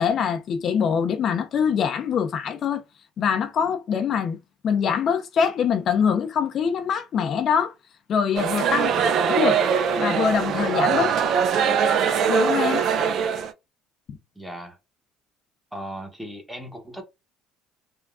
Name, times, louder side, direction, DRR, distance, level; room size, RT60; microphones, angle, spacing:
voice 1, 0.0-2.8 3.2-4.4 4.6-7.7 8.1-9.6 10.0-11.3 12.3-12.8 14.1-14.2, left 7 dB, 50° left, 0.4 m, -24 dB
sound 1, 8.3-13.5, right 7 dB, 55° right, 0.4 m, -22 dB
voice 2, 14.3-14.8 15.7-17.0, equal, 5° right, 0.9 m, -38 dB
3.5 x 2.2 x 2.4 m
supercardioid pair, 85°, 0 cm